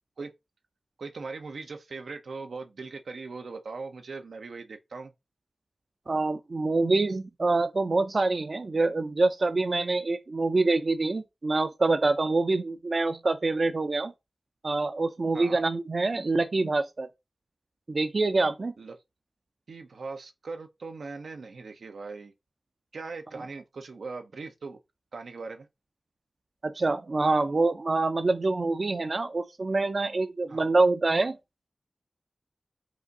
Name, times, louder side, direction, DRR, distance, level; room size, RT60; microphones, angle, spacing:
voice 1, 1.0-5.1 15.3-15.6 18.8-19.0 19.7-22.3 22.9-24.8 25.1-25.7 30.5-30.7, right 4 dB, 90° right, 0.7 m, -40 dB
voice 2, 6.1-14.1 14.6-17.1 17.9-18.7 26.6-31.4, right 3 dB, 55° right, 0.5 m, -26 dB
4.8 x 2.6 x 4.0 m
wide cardioid pair, 70°, 0 cm